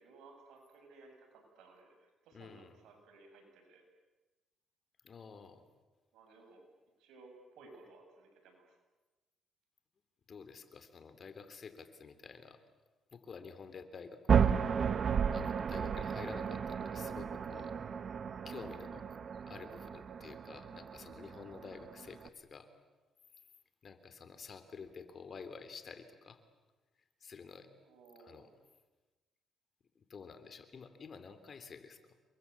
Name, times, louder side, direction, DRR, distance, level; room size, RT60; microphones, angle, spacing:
voice 1, 0.0-3.8 6.1-6.6 7.0-8.8 27.8-28.6, right 3 dB, 90° right, 3 dB, 8.0 m, -58 dB
voice 2, 2.3-2.8 5.0-5.6 10.3-12.6 13.1-14.5 15.3-17.8 18.4-19.2 19.5-22.7 23.8-26.4 27.2-27.7 28.2-28.5 29.9-32.0, left 5 dB, 45° left, 10 dB, 3.3 m, -50 dB
sound 1, 14.3-22.3, right 7 dB, 50° right, 1.1 m, -34 dB
29.0 x 23.0 x 8.5 m, 1.2 s
cardioid pair, 90°, 0 cm